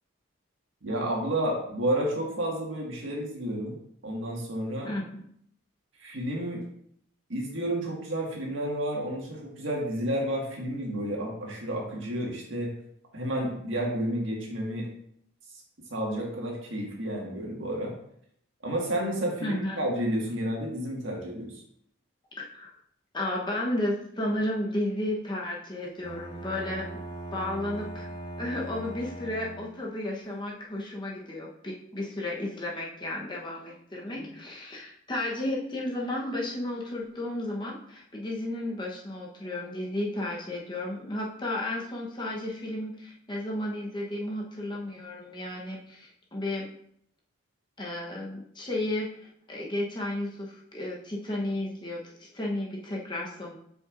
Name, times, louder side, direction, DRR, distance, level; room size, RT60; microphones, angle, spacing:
voice 1, 0.8-3.8 4.0-4.9 6.0-6.6 7.3-12.7 13.1-14.9 15.9-17.9 18.6-21.6, right 1 dB, 65° right, -2 dB, 1.8 m, -31 dB
voice 2, 4.8-5.2 19.4-19.8 22.4-22.7 23.1-26.9 27.3-28.1 28.4-46.7 47.8-53.6, left 1 dB, 20° left, -2 dB, 1.0 m, -33 dB
Bowed string instrument, 26.0-30.0, right 1 dB, 40° left, 1.9 m, -40 dB
7.8 x 5.4 x 2.6 m, 0.68 s
head